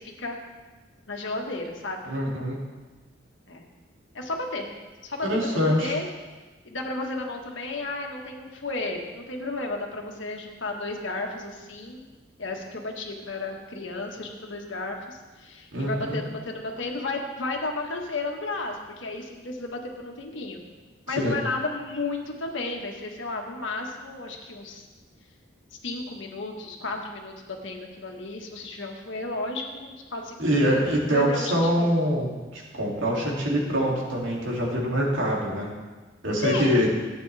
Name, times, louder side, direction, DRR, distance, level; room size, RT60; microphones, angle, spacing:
voice 1, 1.1-2.0 3.5-3.6 4.1-4.7 5.0-6.1 6.6-12.0 12.4-20.6 21.1-24.9 25.8-30.6 30.9-31.9 36.4-36.8, left 3 dB, 80° left, 2 dB, 1.6 m, -33 dB
voice 2, 2.0-2.6 5.2-5.9 15.7-16.2 21.2-21.4 30.4-35.7 36.2-36.9, equal, 85° right, -3 dB, 2.7 m, -24 dB
15.5 x 8.9 x 3.4 m, 1.3 s
head